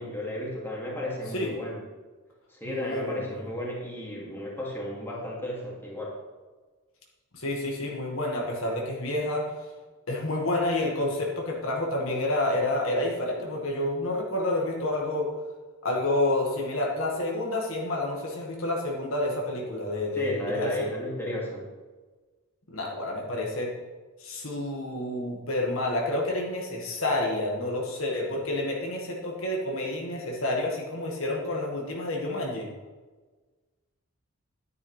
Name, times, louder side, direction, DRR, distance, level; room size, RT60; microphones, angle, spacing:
voice 1, 0.0-1.8 2.5-6.2 20.1-21.7, left 1 dB, 10° left, -4 dB, 2.5 m, -33 dB
voice 2, 2.6-3.4 7.3-9.5 10.1-15.3 15.8-20.9 22.7-23.8 24.2-32.7, left 1 dB, 65° left, -1 dB, 1.9 m, -29 dB
11.0 x 9.7 x 3.4 m, 1.3 s
head